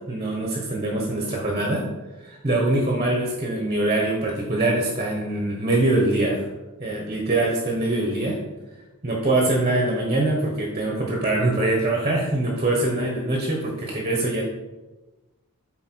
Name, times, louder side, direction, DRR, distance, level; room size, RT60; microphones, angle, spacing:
voice 1, 0.1-1.8 2.2-6.4 6.8-8.4 9.0-14.4, right 2 dB, 30° right, -1 dB, 1.2 m, -23 dB
8.1 x 4.4 x 4.6 m, 1.1 s
head